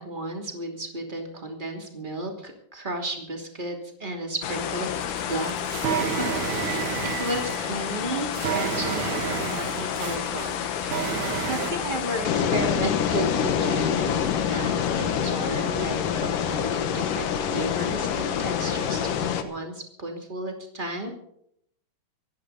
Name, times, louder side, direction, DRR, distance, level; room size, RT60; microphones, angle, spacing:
voice 1, 0.0-5.0 5.3-21.1, right 1 dB, 15° right, 2 dB, 2.5 m, -34 dB
sound 1, 4.4-19.4, left 8 dB, 75° left, 2.8 m, -27 dB
sound 2, 5.0-11.7, right 9 dB, 65° right, 2.2 m, -31 dB
25.5 x 11.5 x 4.1 m, 0.71 s
omnidirectional pair, 3.9 m